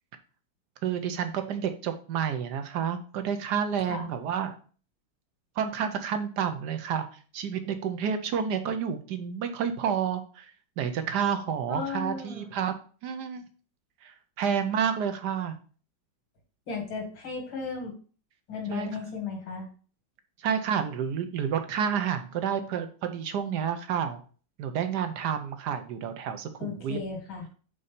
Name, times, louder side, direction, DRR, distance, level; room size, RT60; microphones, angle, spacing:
voice 1, 0.8-4.5 5.6-7.0 7.3-10.5 10.8-12.8 13.0-13.4 14.0-15.5 18.7-19.0 20.4-24.2 24.6-27.0, right 7 dB, 65° right, 8 dB, 1.2 m, -30 dB
voice 2, 11.7-12.5 16.7-17.9 18.5-19.7 26.6-27.4, left 5 dB, 80° left, 2 dB, 2.6 m, -35 dB
5.6 x 4.1 x 5.1 m, 0.40 s
omnidirectional pair, 2.2 m